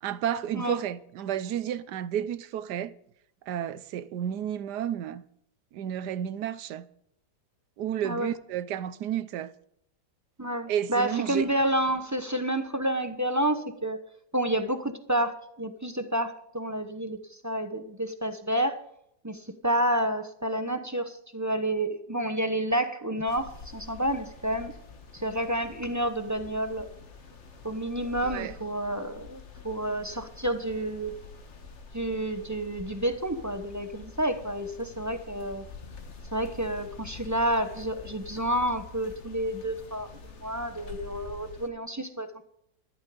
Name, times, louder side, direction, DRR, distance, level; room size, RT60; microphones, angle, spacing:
voice 1, 0.0-2.9 3.5-5.2 5.7-6.9 7.8-9.5 10.7-11.5 28.2-28.6, right 10 dB, 75° right, 1.2 m, -31 dB
voice 2, 10.4-14.0 14.3-18.8 19.2-24.7 25.1-26.9 27.6-31.2 31.9-35.7 36.3-40.1 40.4-42.5, right 1 dB, 15° right, 0.6 m, -29 dB
sound 1, 23.2-41.7, left 4 dB, 45° left, 1.6 m, -46 dB
13.5 x 12.0 x 5.2 m
omnidirectional pair, 1.8 m